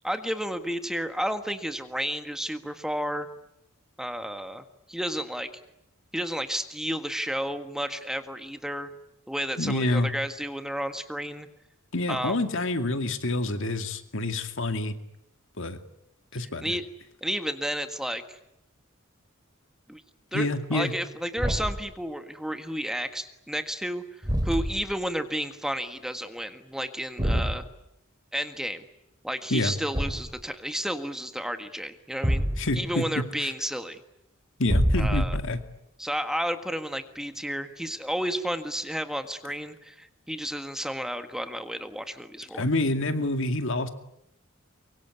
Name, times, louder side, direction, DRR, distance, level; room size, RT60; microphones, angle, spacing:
voice 1, 0.0-3.3 4.0-5.5 6.1-8.9 9.3-11.5 12.1-12.4 16.4-16.8 17.2-18.4 19.9-20.0 20.3-27.7 28.3-28.9 29.2-32.5 32.7-34.0 35.0-35.4 36.0-42.6, equal, 5° right, 9 dB, 1.6 m, -32 dB
voice 2, 9.6-10.1 11.9-15.0 15.6-15.8 16.3-16.8 20.3-20.9 29.5-29.7 32.6-33.5 34.6-35.6 42.5-43.9, left 2 dB, 65° left, 8 dB, 2.3 m, -27 dB
Thump thud, 21.4-21.9 24.2-24.9 27.2-27.6 29.9-30.4 32.2-32.9 34.6-35.6, equal, 20° right, 3.7 m, -26 dB
24.5 x 23.5 x 9.7 m, 0.80 s
head